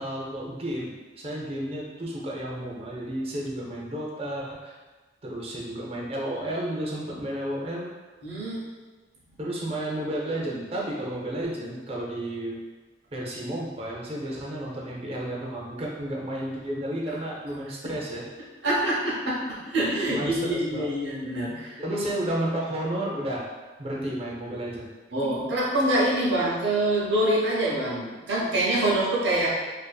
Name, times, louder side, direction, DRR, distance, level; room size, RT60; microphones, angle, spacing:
voice 1, 0.0-4.7 5.2-7.9 9.4-12.6 13.1-18.3 20.1-20.9 21.8-23.5 23.8-24.9, right 1 dB, 35° right, -3 dB, 0.5 m, -32 dB
voice 2, 8.2-8.7 18.6-21.8 25.1-29.6, right 1 dB, 80° right, -5 dB, 0.7 m, -25 dB
2.5 x 2.4 x 2.2 m, 1.3 s
head